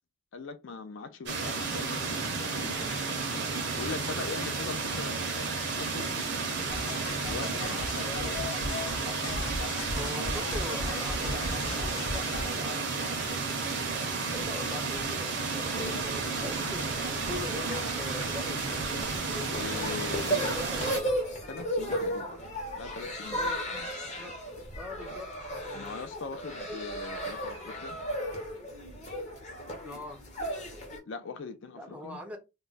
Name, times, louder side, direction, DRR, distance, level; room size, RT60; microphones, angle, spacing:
voice 1, 0.3-6.8 7.2-8.7 15.8-16.1 19.6-20.4 21.5-22.3 22.8-23.9 25.7-28.0 31.1-32.2, left 4 dB, 65° left, 0.4 m, -41 dB
sound 1, 1.3-21.0, right 4 dB, 55° right, 0.6 m, -32 dB
sound 2, 6.7-12.5, left 2 dB, 90° left, 0.8 m, -37 dB
voice 2, 9.9-13.7 14.3-15.3 16.4-18.9 19.7-21.0 23.3-23.6 24.2-24.3 24.8-26.0 26.6-26.7 29.8-30.2 31.7-32.4, left 1 dB, 5° right, 0.4 m, -42 dB
sound 3, 15.5-31.0, equal, 35° left, 0.7 m, -36 dB
2.3 x 2.1 x 3.8 m
head